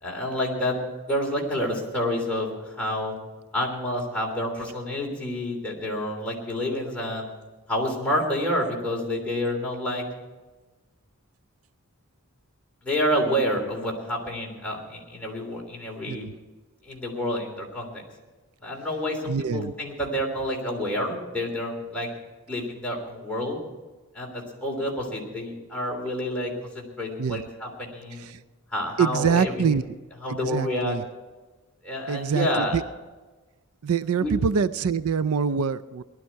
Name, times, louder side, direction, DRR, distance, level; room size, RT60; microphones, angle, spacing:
voice 1, 0.0-0.8 1.1-3.2 3.5-7.3 7.7-10.0 12.8-16.3 16.8-18.0 18.6-22.1 22.5-23.6 24.1-28.3 28.7-29.6 30.2-30.9 31.8-32.8 34.1-34.3, left 1 dB, 5° left, -3 dB, 3.3 m, -28 dB
voice 2, 19.3-19.7 27.2-27.4 28.2-28.4 29.0-29.8 30.3-31.0 32.1-32.8 33.8-36.0, right 6 dB, 70° right, 15 dB, 0.4 m, -25 dB
19.0 x 12.0 x 4.6 m, 1.2 s
head